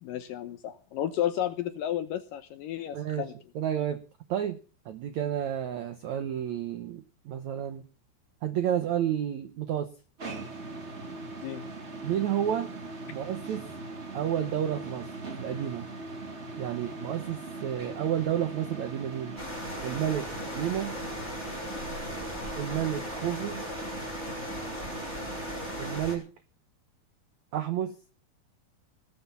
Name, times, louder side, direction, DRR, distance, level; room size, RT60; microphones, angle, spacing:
voice 1, 0.0-3.3 11.1-11.2 11.4-11.6, left 11 dB, 75° left, 11 dB, 2.1 m, -32 dB
voice 2, 2.9-3.2 3.5-4.0 4.3-4.6 4.8-7.9 8.4-9.9 12.0-12.7 13.1-13.7 14.1-15.9 16.6-19.4 19.8-21.0 22.6-23.6 25.8-26.2 27.5-27.9, right 10 dB, 80° right, 10 dB, 1.6 m, -31 dB
sound 1, 10.2-26.0, right 3 dB, 55° right, 0.7 m, -40 dB
sound 2, 19.4-26.2, left 1 dB, 5° left, 6.0 m, -38 dB
20.0 x 7.8 x 7.0 m, 0.37 s
omnidirectional pair, 4.8 m